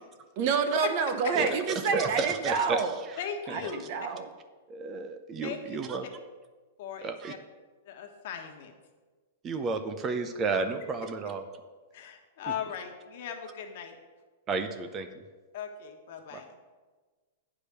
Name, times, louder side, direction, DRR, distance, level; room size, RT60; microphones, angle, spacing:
voice 1, 0.4-2.9 3.5-4.3, right 5 dB, 45° right, 8 dB, 0.9 m, -28 dB
voice 2, 1.9-2.8 3.1-3.2 4.7-6.1 7.0-7.3 9.4-11.5 14.5-15.2 16.3-16.4, right 4 dB, 25° right, 9 dB, 0.6 m, -32 dB
voice 3, 3.2-3.8 5.4-5.6 6.8-7.4 7.9-8.7 11.9-13.9 15.5-16.5, left 8 dB, 55° left, 4 dB, 1.3 m, -38 dB
8.5 x 4.9 x 6.8 m, 1.3 s
hypercardioid pair, 140°, 0 cm